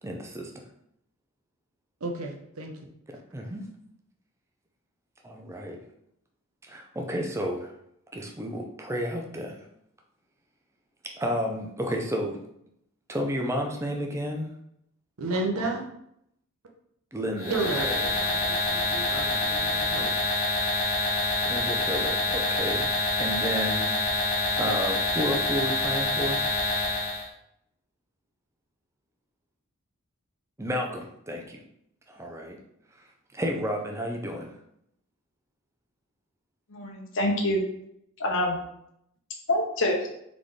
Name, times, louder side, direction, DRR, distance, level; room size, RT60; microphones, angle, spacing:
voice 1, 0.0-0.5 3.3-3.7 5.2-5.8 6.6-7.7 8.1-9.6 11.0-12.4 13.1-14.5 17.1-18.1 21.4-22.9 23.2-23.9 24.6-26.4 30.6-31.6 32.1-32.6 33.0-33.1 33.3-34.5, equal, 10° right, 2 dB, 0.5 m, -31 dB
voice 2, 2.0-2.7 15.2-15.9 17.5-20.2, right 2 dB, 70° right, 2 dB, 0.8 m, -32 dB
sound 1, 17.4-27.3, left 2 dB, 30° left, 1.4 m, -27 dB
voice 3, 36.7-37.6 38.2-38.6 39.5-40.1, left 1 dB, 55° left, 1 dB, 0.9 m, -26 dB
4.0 x 3.6 x 3.2 m, 0.75 s
head